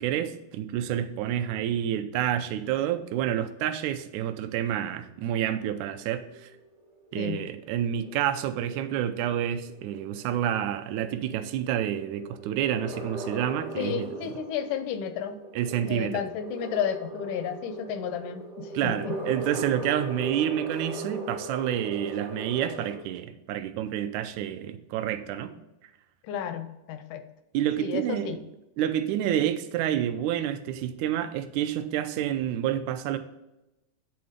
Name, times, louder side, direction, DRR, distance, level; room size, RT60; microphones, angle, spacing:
voice 1, 0.0-6.5 7.1-14.1 15.6-16.2 18.7-25.5 27.5-28.4 28.8-33.2, right 10 dB, 80° right, 9 dB, 1.9 m, -29 dB
sound 1, 5.6-23.0, right 1 dB, 65° right, 0.4 m, -39 dB
voice 2, 13.8-15.4 15.9-19.3 26.2-27.2 27.8-28.4, left 8 dB, 85° left, 9 dB, 2.2 m, -32 dB
8.6 x 4.0 x 4.9 m, 0.95 s
omnidirectional pair, 3.4 m